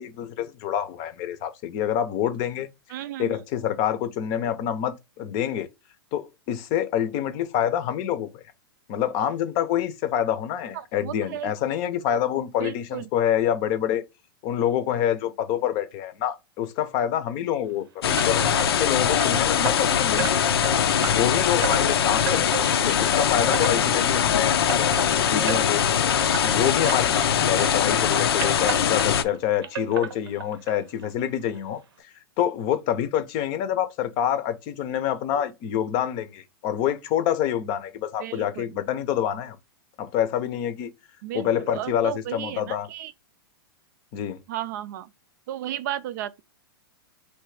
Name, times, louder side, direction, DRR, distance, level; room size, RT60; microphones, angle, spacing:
voice 1, 0.0-2.7 3.2-5.7 6.1-8.4 8.9-14.0 14.4-20.4 21.0-25.8 26.4-31.8 32.4-39.6 40.0-40.9 41.3-42.9 44.1-44.4, left 10 dB, 35° left, 0.7 m, -27 dB
voice 2, 2.9-3.4 11.0-11.5 12.6-13.0 38.2-38.7 41.2-43.1 44.5-45.1 45.5-46.4, right 12 dB, 50° right, 0.4 m, -33 dB
sound 1, 18.0-29.2, left 8 dB, 85° left, 0.6 m, -22 dB
sound 2, 18.2-27.3 27.6-29.4 29.6-30.7 31.0-31.1 31.6-31.7 32.0-32.1, right 7 dB, 80° right, 0.7 m, -34 dB
3.3 x 3.0 x 4.7 m
hypercardioid pair, 150°, 13 cm